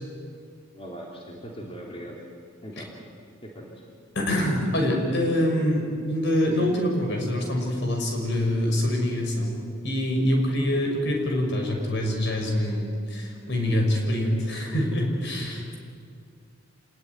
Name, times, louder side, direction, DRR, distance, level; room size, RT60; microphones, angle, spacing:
voice 1, 0.7-2.2 2.6-2.9 3.4-3.7 15.4-15.7, right 1 dB, 30° left, -2 dB, 3.3 m, -39 dB
voice 2, 4.1-15.6, left 1 dB, 60° left, 2 dB, 6.2 m, -25 dB
27.5 x 20.0 x 9.7 m, 2.2 s
head